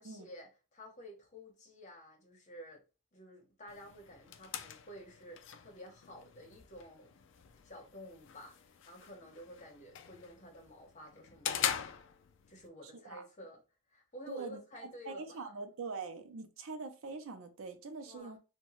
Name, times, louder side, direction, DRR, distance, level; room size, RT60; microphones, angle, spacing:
voice 1, 0.0-2.8 3.1-7.2 7.6-11.9 12.5-13.6 13.9-15.5 18.1-18.4, equal, 35° left, 0.8 m, -52 dB
sound 1, 3.7-12.7, left 8 dB, 60° left, 0.3 m, -43 dB
voice 2, 14.3-14.6 15.1-18.4, right 4 dB, 80° right, 0.5 m, -43 dB
2.7 x 2.1 x 3.0 m
head